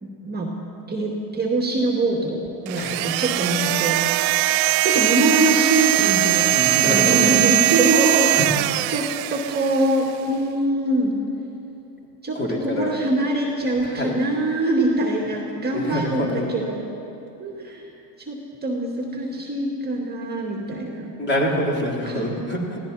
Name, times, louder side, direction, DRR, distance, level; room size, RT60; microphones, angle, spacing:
voice 1, 0.0-0.5 0.9-4.0 4.8-8.6 8.9-9.0 9.3-11.1 12.2-12.4 12.6-16.9 17.4-17.8 18.2-21.1 22.1-22.2, right 1 dB, 20° right, -1 dB, 2.0 m, -24 dB
voice 2, 2.7-3.2 6.5-7.4 8.3-8.9 12.3-13.0 13.8-14.2 15.7-16.5 21.2-22.8, equal, 20° left, -2 dB, 3.3 m, -26 dB
sound 1, 2.7-10.0, right 18 dB, 90° right, 0.6 m, -21 dB
20.5 x 16.5 x 4.1 m, 2.8 s
supercardioid pair, 120°, 49 cm